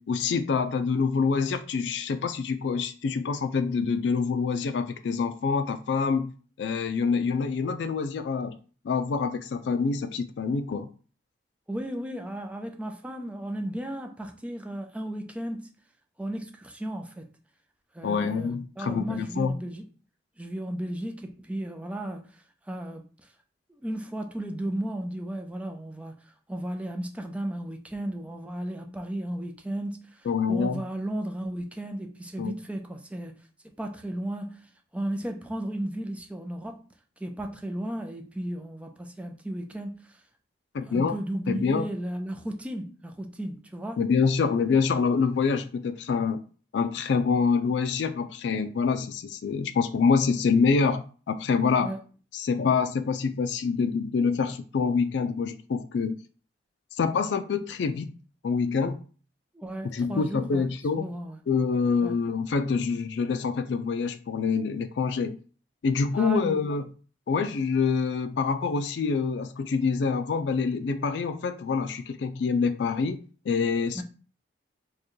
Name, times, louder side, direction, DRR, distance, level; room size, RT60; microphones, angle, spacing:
voice 1, 0.0-6.3 6.6-8.6 8.8-10.9 18.0-19.6 30.3-30.8 32.4-32.6 40.7-41.1 41.5-41.9 44.0-46.4 46.7-51.9 52.3-56.2 57.0-58.1 58.4-59.0 59.9-61.1 61.5-65.4 65.8-66.8 67.3-73.2 73.5-74.0, left 5 dB, 75° left, 0.4 m, -26 dB
voice 2, 11.7-15.7 16.2-17.3 17.9-19.8 20.4-23.3 23.8-26.1 26.5-33.3 33.8-34.7 34.9-36.8 37.2-40.2 40.8-44.0 51.8-52.0 59.5-60.7 61.0-61.4 62.0-62.1 66.1-66.6 73.9-74.0, right 1 dB, 5° right, 0.4 m, -34 dB
4.6 x 2.2 x 3.1 m
head